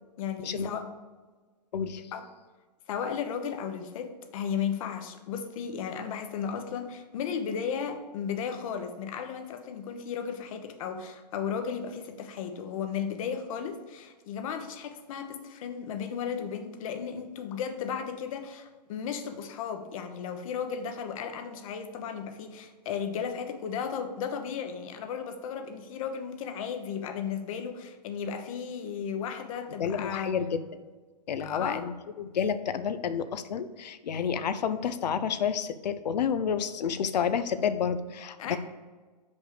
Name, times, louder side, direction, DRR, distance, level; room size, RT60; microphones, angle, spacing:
voice 1, 0.2-0.9 2.1-2.3 2.9-30.3 31.4-31.9 38.4-38.6, left 7 dB, 50° left, 7 dB, 1.0 m, -35 dB
voice 2, 29.8-30.8 31.3-31.9 32.2-38.6, left 7 dB, 80° left, 11 dB, 0.6 m, -30 dB
6.2 x 5.3 x 5.0 m, 1.3 s
hypercardioid pair, 140°, 21 cm